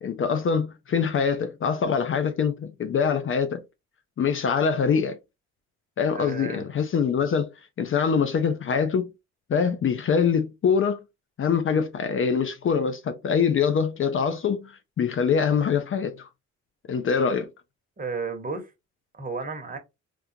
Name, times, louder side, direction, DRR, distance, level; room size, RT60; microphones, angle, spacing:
voice 1, 0.0-3.6 4.2-5.2 6.0-7.5 7.8-9.1 9.5-11.0 11.4-16.3 16.9-17.5, left 6 dB, 45° left, 0.5 m, -24 dB
voice 2, 6.1-6.7 18.0-18.7 19.1-19.8, right 4 dB, 30° right, 1.1 m, -33 dB
3.6 x 2.4 x 2.7 m
cardioid pair, 90°, 30 cm